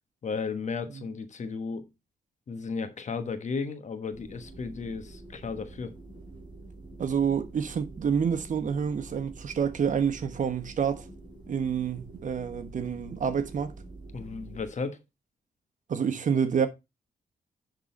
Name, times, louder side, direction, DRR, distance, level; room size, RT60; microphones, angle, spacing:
voice 1, 0.2-1.9 2.5-5.9 14.1-15.0, left 5 dB, 55° left, 1.2 m, -34 dB
sound 1, 4.1-14.7, right 2 dB, 30° right, 3.8 m, -46 dB
voice 2, 7.0-11.1 11.5-13.7 15.9-16.7, right 7 dB, 60° right, 1.2 m, -28 dB
10.5 x 3.9 x 4.2 m
cardioid pair, 80°, 15 cm